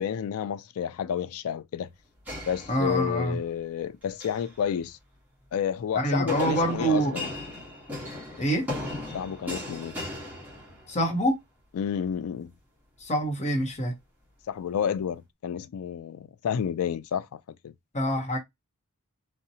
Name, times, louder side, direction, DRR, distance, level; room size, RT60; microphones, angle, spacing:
voice 1, 0.0-1.9 2.5-5.0 5.5-7.3 9.1-10.0 11.7-12.5 14.5-17.7, left 8 dB, 75° left, 0.3 m, -30 dB
sound 1, 2.3-3.3 4.0-4.5 6.3-11.1, left 1 dB, 10° right, 1.1 m, -37 dB
voice 2, 2.7-3.4 5.9-7.2 8.4-8.7 10.9-11.4 13.0-13.9 17.9-18.4, right 1 dB, 30° left, 0.7 m, -26 dB
2.6 x 2.1 x 2.7 m
head